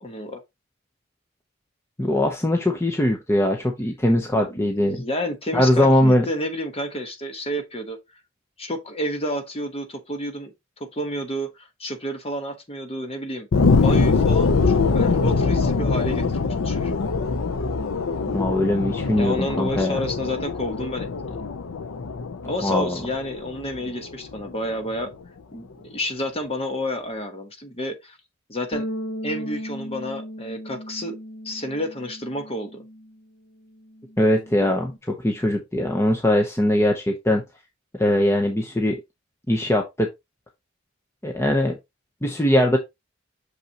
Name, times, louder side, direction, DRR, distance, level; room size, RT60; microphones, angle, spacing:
voice 1, 0.0-0.4 4.3-8.0 8.6-13.5 13.8-16.9 19.2-21.4 22.5-25.1 25.5-28.2 28.5-28.9 29.2-31.2 31.4-32.8, left 1 dB, 30° left, 1.1 m, -30 dB
voice 2, 2.0-5.0 5.5-6.2 18.3-20.0 22.6-23.0 34.2-37.4 37.9-39.0 39.5-40.1 41.2-41.8 42.2-42.8, left 1 dB, 10° left, 0.7 m, -21 dB
sound 1, 13.5-24.5 25.0-25.1, left 4 dB, 75° left, 0.6 m, -23 dB
sound 2, 28.7-33.3 33.6-35.0, equal, 45° left, 1.0 m, -36 dB
6.2 x 5.5 x 2.9 m
head